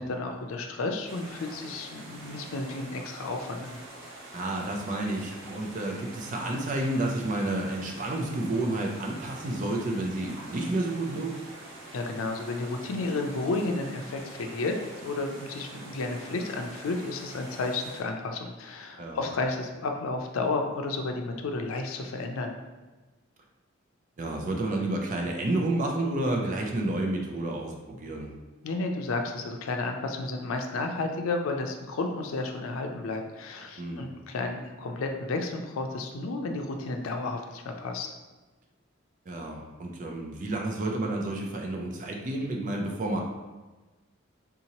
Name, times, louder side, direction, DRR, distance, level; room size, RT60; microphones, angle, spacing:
voice 1, 0.0-3.8 11.9-14.7 15.0-22.6 28.6-38.1, left 3 dB, 90° left, 3 dB, 0.4 m, -32 dB
sound 1, 1.0-18.0, right 1 dB, 75° right, 1.0 m, -45 dB
voice 2, 4.3-11.3 19.0-19.2 24.2-28.3 33.8-34.1 39.3-43.2, right 2 dB, 40° right, 1 dB, 0.4 m, -30 dB
3.7 x 2.8 x 2.9 m, 1.2 s
head